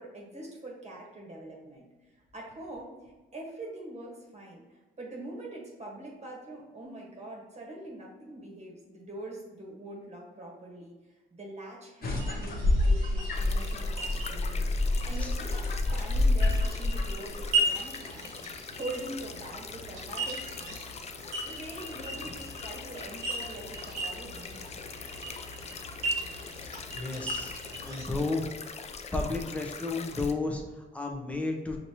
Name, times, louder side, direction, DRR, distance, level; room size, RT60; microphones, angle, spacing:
voice 1, 0.0-14.7 15.0-18.3 18.7-20.8 21.4-24.8, right 1 dB, 35° right, -2 dB, 1.2 m, -44 dB
sound 1, 12.0-17.6, left 2 dB, 50° left, 0.9 m, -27 dB
sound 2, 12.2-28.1, right 2 dB, 85° right, 1.1 m, -37 dB
sound 3, 13.3-30.3, left 5 dB, 35° left, 0.4 m, -43 dB
voice 2, 26.5-27.5 27.8-28.5 29.1-31.8, left 3 dB, 5° left, 1 dB, 0.7 m, -33 dB
5.1 x 2.9 x 2.8 m, 1.2 s
cardioid pair, 90°, 20 cm